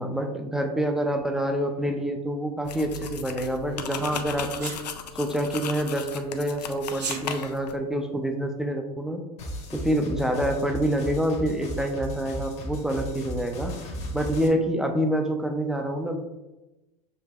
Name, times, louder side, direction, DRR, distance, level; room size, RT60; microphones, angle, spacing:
voice 1, 0.0-4.7 5.1-9.2 9.8-13.7 14.1-16.2, right 1 dB, ahead, 3 dB, 0.4 m, -27 dB
sound 1, 2.6-7.8, left 7 dB, 80° left, 0.4 m, -36 dB
Sneeze, 4.6-4.8 6.9-7.2, right 6 dB, 80° right, 0.7 m, -32 dB
sound 2, 9.4-14.5, equal, 30° left, 0.9 m, -35 dB
6.6 x 2.6 x 2.3 m, 1.0 s
hypercardioid pair, 95°, 21 cm